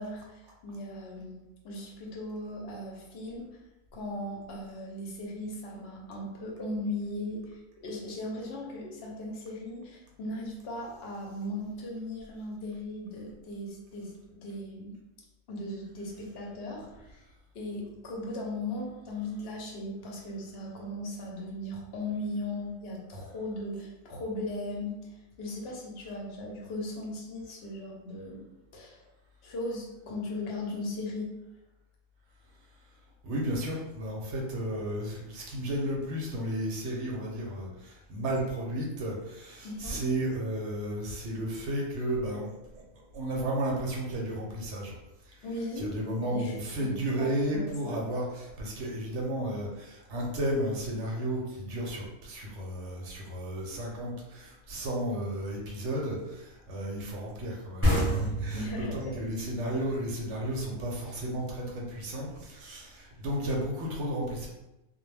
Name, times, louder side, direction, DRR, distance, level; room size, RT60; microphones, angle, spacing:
voice 1, 0.0-3.5 3.9-14.9 15.5-17.2 17.5-28.4 28.7-29.0 29.4-31.3 39.6-40.0 45.4-46.0 46.2-48.0 58.5-59.1, left 1 dB, 60° left, -2 dB, 0.7 m, -38 dB
voice 2, 33.2-42.8 43.1-45.0 45.3-45.5 45.8-64.5, right 1 dB, 65° right, -2 dB, 0.8 m, -33 dB
sound 1, 57.8-61.2, equal, 10° right, 0.7 m, -29 dB
2.2 x 2.1 x 3.2 m, 0.97 s
omnidirectional pair, 1.4 m